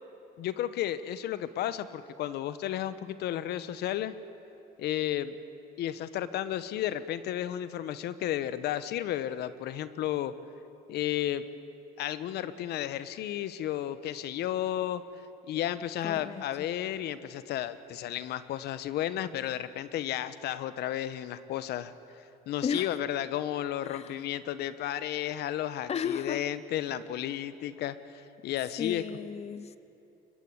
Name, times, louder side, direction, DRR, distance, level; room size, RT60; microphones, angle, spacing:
voice 1, 0.4-4.1 4.8-5.4 5.8-10.3 10.9-11.5 12.0-15.0 15.5-21.9 22.5-29.0, left 12 dB, 75° left, 1.2 m, -33 dB
voice 2, 16.0-16.7 22.6-22.9 23.8-24.2 25.9-26.4 28.8-29.8, left 7 dB, 40° left, 1.0 m, -34 dB
23.5 x 21.0 x 9.6 m
cardioid pair, 110°, 17 cm